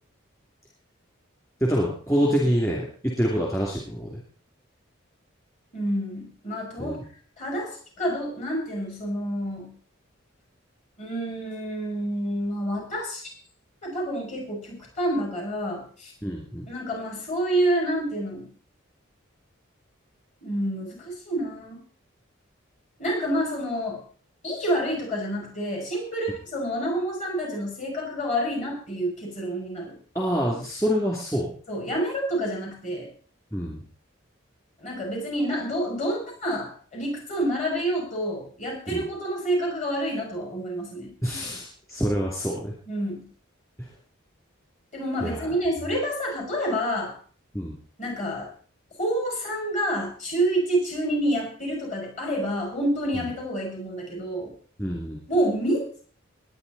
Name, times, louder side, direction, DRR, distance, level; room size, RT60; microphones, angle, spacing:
voice 1, 1.6-4.2 6.8-7.0 16.2-16.7 30.1-31.5 33.5-33.8 38.9-39.0 41.2-42.7 43.8-43.9 45.2-45.5 47.5-47.8 54.8-55.2, equal, 15° left, -3 dB, 2.9 m, -26 dB
voice 2, 5.7-7.0 7.4-9.7 11.0-13.3 13.8-16.1 16.7-18.5 20.4-21.8 23.0-24.0 24.4-29.9 31.7-33.1 34.8-41.1 42.9-43.3 44.9-47.1 48.0-48.5 49.0-54.5 55.3-56.0, right 1 dB, 35° left, 1 dB, 6.7 m, -28 dB
21.0 x 9.6 x 4.2 m, 0.43 s
head